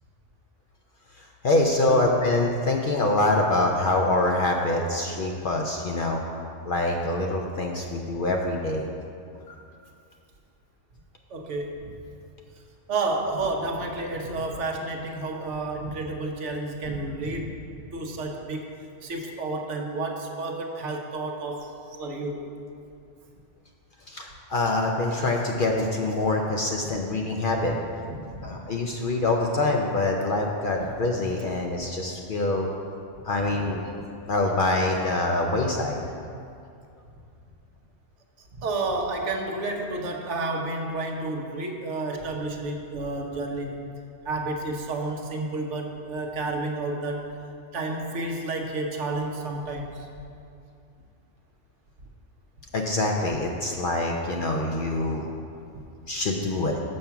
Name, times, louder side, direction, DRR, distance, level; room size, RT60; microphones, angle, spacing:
voice 1, 1.2-6.2 6.7-8.8 9.5-9.6 24.1-27.7 28.4-32.7 33.2-33.9 34.3-36.3 52.7-55.3 56.1-56.7, left 2 dB, 55° left, 1 dB, 0.6 m, -25 dB
voice 2, 11.3-11.9 12.9-17.6 17.9-18.7 19.0-21.7 22.0-22.4 28.3-28.5 38.6-43.9 44.2-47.3 47.7-50.1 55.7-55.8, right 2 dB, 70° right, 2 dB, 1.1 m, -30 dB
6.9 x 5.4 x 5.7 m, 2.5 s
omnidirectional pair, 1.3 m